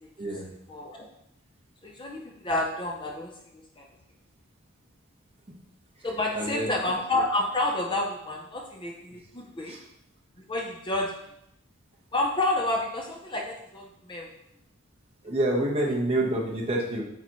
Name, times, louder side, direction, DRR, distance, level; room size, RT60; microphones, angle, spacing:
voice 1, 0.7-1.1 1.8-3.9 6.0-9.8 10.5-11.1 12.1-14.3 15.3-15.4, left 2 dB, 20° left, 0 dB, 0.5 m, -29 dB
voice 2, 6.3-6.7 9.7-9.8 15.2-17.0, right 1 dB, 25° right, -3 dB, 1.2 m, -27 dB
8.2 x 4.0 x 3.1 m, 0.79 s
head